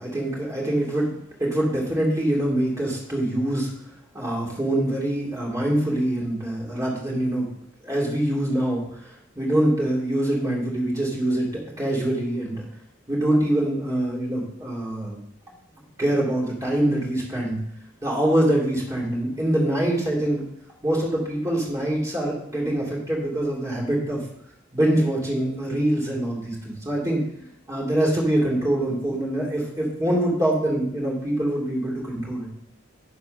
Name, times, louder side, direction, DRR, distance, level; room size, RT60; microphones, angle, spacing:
voice 1, 0.0-3.7 4.1-7.5 7.8-12.6 13.1-15.2 16.0-17.6 18.0-20.4 20.8-24.2 24.7-27.2 27.7-32.5, right 1 dB, 15° right, -3 dB, 2.8 m, -24 dB
10.5 x 5.3 x 5.7 m, 0.72 s
head